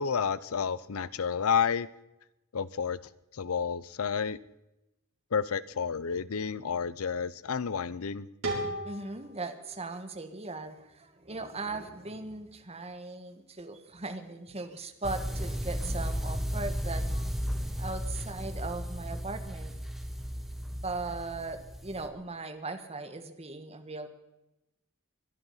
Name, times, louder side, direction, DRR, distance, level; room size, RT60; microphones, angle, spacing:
voice 1, 0.0-1.9 2.5-3.0 3.4-4.4 5.3-8.3, left 6 dB, 85° left, 18 dB, 0.6 m, -30 dB
sound 1, 8.4-11.3, right 1 dB, 75° right, 4.3 m, -38 dB
voice 2, 8.8-17.2 17.8-19.7 20.8-24.1, right 3 dB, 30° right, 8 dB, 1.4 m, -38 dB
sound 2, 15.0-22.1, equal, ahead, 1.2 m, -34 dB
23.0 x 11.0 x 5.6 m, 0.93 s
head